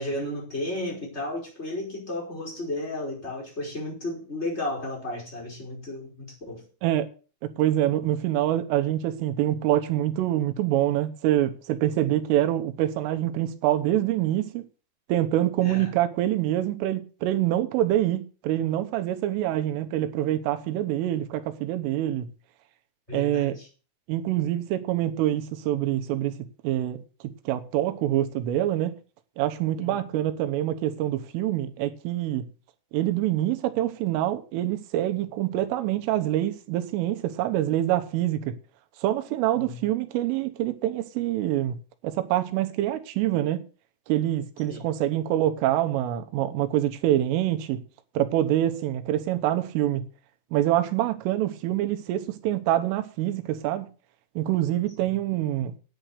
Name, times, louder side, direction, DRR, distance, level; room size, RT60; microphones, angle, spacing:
voice 1, 0.0-6.6 15.6-15.9 23.1-23.7 29.8-30.0 39.5-39.8 44.7-44.9 55.0-55.1, left 1 dB, 15° left, 4.8 m, -33 dB
voice 2, 7.4-14.7 15.1-22.3 23.1-23.6 24.1-26.3 26.6-27.0 27.5-29.0 29.4-32.5 32.9-38.6 39.0-43.6 44.1-47.8 48.2-50.1 50.5-53.9 54.4-55.8, right 13 dB, 85° right, 3.6 m, -25 dB
10.5 x 9.2 x 6.6 m
omnidirectional pair, 5.7 m